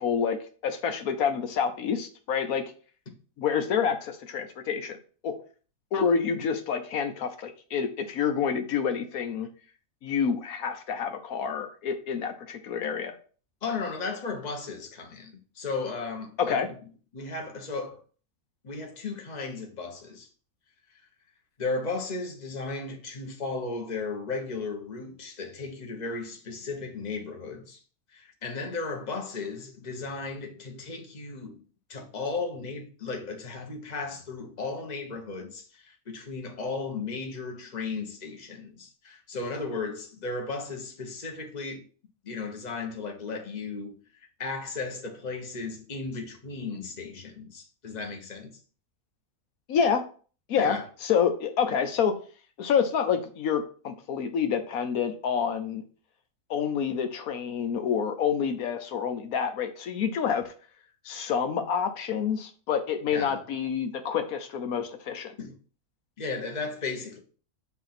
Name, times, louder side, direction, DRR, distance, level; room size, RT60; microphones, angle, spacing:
voice 1, 0.0-2.6 3.4-5.0 5.2-5.3 5.9-9.5 10.0-13.1 16.4-16.7 49.7-50.0 50.5-52.1 52.6-55.8 56.5-60.5 61.0-65.3, left 7 dB, 80° left, 1.3 m, -28 dB
voice 2, 13.6-16.7 17.1-18.0 18.6-20.3 21.6-27.8 28.1-31.6 31.9-41.9 42.2-44.0 44.4-48.6 50.6-50.9 63.1-63.4 65.4-65.5 66.2-67.2, left 4 dB, 30° left, 1.2 m, -35 dB
7.7 x 2.7 x 5.9 m
omnidirectional pair, 1.5 m